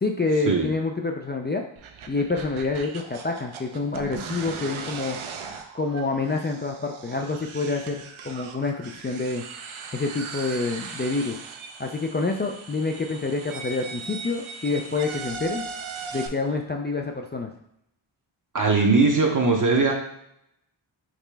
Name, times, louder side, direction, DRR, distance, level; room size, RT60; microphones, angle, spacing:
voice 1, 0.0-1.6 2.1-5.2 5.7-9.4 9.9-11.4 11.8-15.6 16.1-17.5, left 3 dB, 25° left, 2 dB, 0.3 m, -27 dB
sound 1, 1.8-16.3, right 5 dB, 85° right, 0.7 m, -38 dB
voice 2, 18.5-19.9, right 3 dB, 40° right, 0 dB, 0.7 m, -20 dB
5.0 x 3.2 x 3.3 m, 0.76 s
wide cardioid pair, 125°, 47 cm